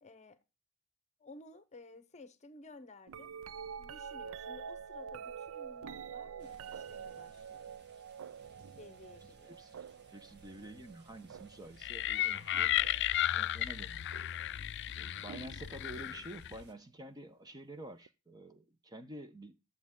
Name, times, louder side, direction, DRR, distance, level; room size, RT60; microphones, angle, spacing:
voice 1, 0.0-0.4 1.2-3.3 3.8-7.7 8.8-9.6, left 2 dB, 30° left, 0.9 m, -55 dB
sound 1, 3.1-13.2 14.1-14.5 15.3-16.3 18.1-18.2, right 7 dB, 65° right, 0.4 m, -47 dB
sound 2, 6.4-16.7, right 3 dB, 50° right, 1.5 m, -63 dB
voice 2, 10.1-12.7 13.3-14.2 15.0-19.6, right 1 dB, 20° right, 0.9 m, -49 dB
sound 3, 11.8-16.6, left 13 dB, 55° left, 0.4 m, -34 dB
12.0 x 7.3 x 3.7 m
head